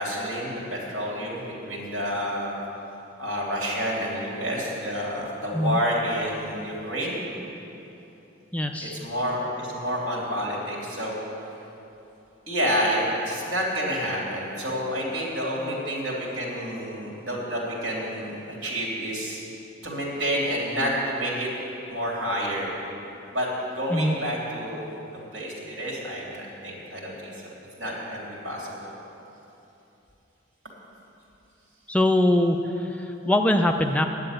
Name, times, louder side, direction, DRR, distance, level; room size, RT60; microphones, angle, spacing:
voice 1, 0.0-2.5 3.2-7.2 8.8-11.2 12.5-19.4 19.8-21.5 21.9-22.7 23.3-23.5 23.7-24.9 25.3-27.5 27.8-28.9, equal, 65° right, -4 dB, 3.3 m, -29 dB
voice 2, 8.5-9.0 23.9-24.1 31.9-32.6 33.3-34.0, left 1 dB, 5° left, 4 dB, 0.4 m, -21 dB
10.5 x 7.7 x 8.8 m, 3.0 s
head